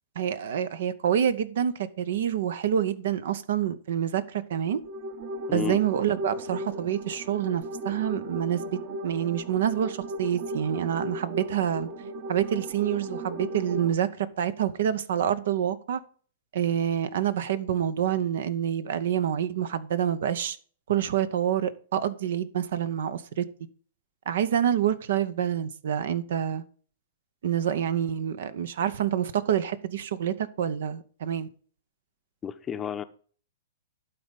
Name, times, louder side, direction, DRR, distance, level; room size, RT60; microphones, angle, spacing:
voice 1, 0.2-4.8 5.5-8.8 9.0-11.9 12.3-16.0 16.5-20.6 20.9-23.5 24.3-26.6 27.4-31.5, right 9 dB, 65° right, 0.7 m, -27 dB
sound 1, 4.6-13.9, right 1 dB, 40° right, 1.2 m, -36 dB
voice 2, 5.5-5.8 32.4-33.0, left 8 dB, 20° left, 0.7 m, -31 dB
12.0 x 4.1 x 5.2 m
hypercardioid pair, 115°, 0 cm